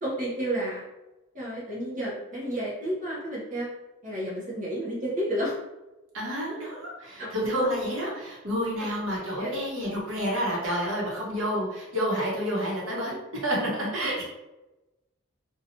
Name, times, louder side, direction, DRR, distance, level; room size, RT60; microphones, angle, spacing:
voice 1, 0.0-0.8 1.3-3.7 4.0-5.5 7.2-7.3 7.6-7.7 8.8-8.9 9.4-9.6 14.0-14.3, right 1 dB, 35° right, -6 dB, 0.8 m, -31 dB
voice 2, 6.1-14.3, equal, 65° right, -4 dB, 1.0 m, -29 dB
2.8 x 2.3 x 2.6 m, 1.0 s
head